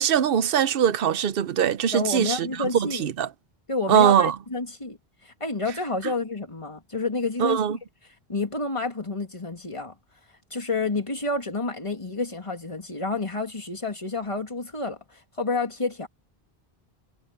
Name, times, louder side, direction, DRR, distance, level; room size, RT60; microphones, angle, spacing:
voice 1, 0.0-3.3 3.9-4.3 7.4-7.8, right 8 dB, 65° right, 0.9 m, -22 dB
voice 2, 1.9-3.1 3.7-5.0 5.2-7.8 8.3-9.9 10.5-16.1, left 3 dB, 30° left, 2.6 m, -29 dB
omnidirectional pair, 1.1 m